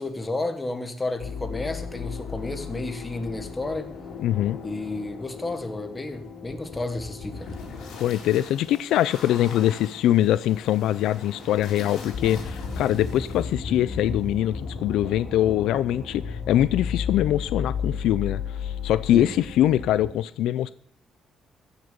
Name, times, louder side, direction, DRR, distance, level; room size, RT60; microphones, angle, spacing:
voice 1, 0.0-3.9 4.6-7.5 19.1-19.3, left 2 dB, 15° left, 1.4 m, -32 dB
sound 1, 1.2-20.1, left 5 dB, 65° left, 4.1 m, -35 dB
voice 2, 4.2-4.6 8.0-20.7, left 12 dB, 85° left, 0.4 m, -23 dB
16.0 x 6.6 x 6.8 m
cardioid pair, 150°, 0 cm